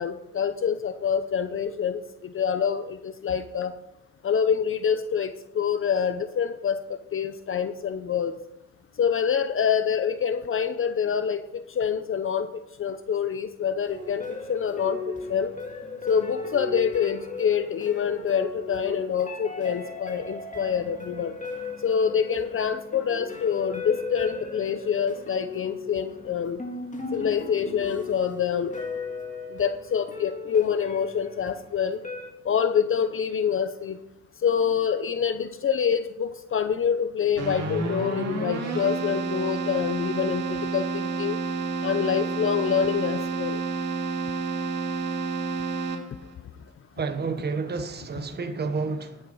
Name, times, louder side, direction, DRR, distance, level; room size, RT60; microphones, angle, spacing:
voice 1, 0.0-3.7 4.2-8.3 9.0-12.5 12.8-15.0 15.3-15.5 16.1-21.3 21.8-26.6 27.1-28.7 29.5-32.0 32.4-34.0 34.4-41.4 41.8-43.6, left 7 dB, 45° left, 0.7 m, -26 dB
sound 1, 13.8-32.3, left 4 dB, 25° left, 2.2 m, -37 dB
Keyboard (musical), 37.4-46.3, right 4 dB, 60° right, 2.6 m, -30 dB
voice 2, 47.0-49.2, right 4 dB, 35° right, 1.2 m, -30 dB
11.0 x 8.1 x 5.4 m
cardioid pair, 90°, 30 cm